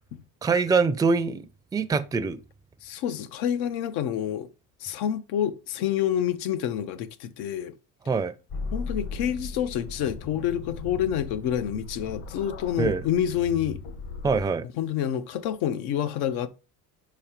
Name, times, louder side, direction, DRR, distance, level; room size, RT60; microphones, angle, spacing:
voice 1, 0.4-2.4 8.1-8.3 12.8-13.0 14.2-14.7, right 4 dB, 10° right, 0.4 m, -24 dB
voice 2, 2.8-4.5 4.8-7.7 8.7-13.8 14.8-16.5, left 10 dB, 85° left, 0.8 m, -28 dB
sound 1, 8.5-14.4, left 4 dB, 65° left, 1.8 m, -37 dB
5.2 x 4.9 x 4.4 m
cardioid pair, 105°, 38 cm